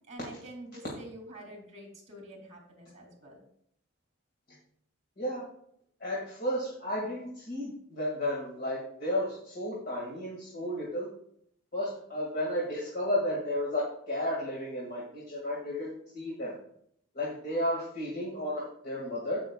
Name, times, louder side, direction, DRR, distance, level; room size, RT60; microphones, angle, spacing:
voice 1, 0.1-3.4, right 1 dB, 35° right, 1 dB, 3.0 m, -47 dB
voice 2, 6.0-11.1 11.7-16.5 17.1-19.4, left 1 dB, 50° left, -5 dB, 2.2 m, -33 dB
15.5 x 6.0 x 2.4 m, 0.69 s
head